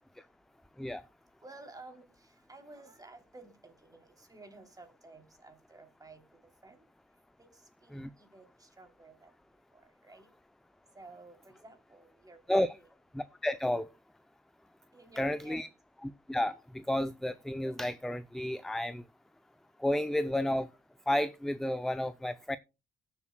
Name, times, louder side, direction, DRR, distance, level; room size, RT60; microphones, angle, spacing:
voice 1, 1.4-6.2 6.6-6.8 7.4-9.3 9.7-10.3 10.9-12.9 14.9-15.7, right 3 dB, 20° right, 3.1 m, -53 dB
voice 2, 13.1-13.9 15.2-15.7 16.0-19.0 19.8-20.7 21.1-22.6, left 1 dB, ahead, 0.5 m, -31 dB
19.0 x 7.2 x 2.2 m
cardioid pair, 90°, 20 cm